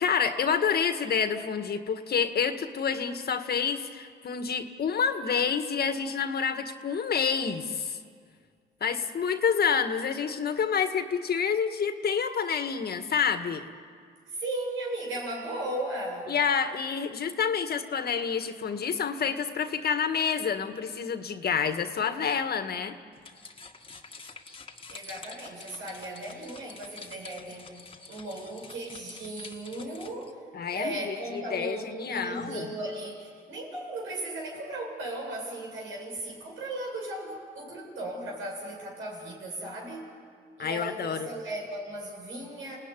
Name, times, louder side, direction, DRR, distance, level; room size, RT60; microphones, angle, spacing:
voice 1, 0.0-8.0 8.8-13.7 16.3-23.0 30.5-32.7 40.6-41.3, left 6 dB, 50° left, 8 dB, 1.8 m, -28 dB
voice 2, 14.3-16.3 24.9-27.8 28.1-30.4 30.7-40.1 40.6-42.8, right 1 dB, 85° right, -1 dB, 7.9 m, -36 dB
sound 1, 23.1-30.3, left 4 dB, 25° left, 1.9 m, -48 dB
29.0 x 18.5 x 10.0 m, 2.2 s
cardioid pair, 90°, 20 cm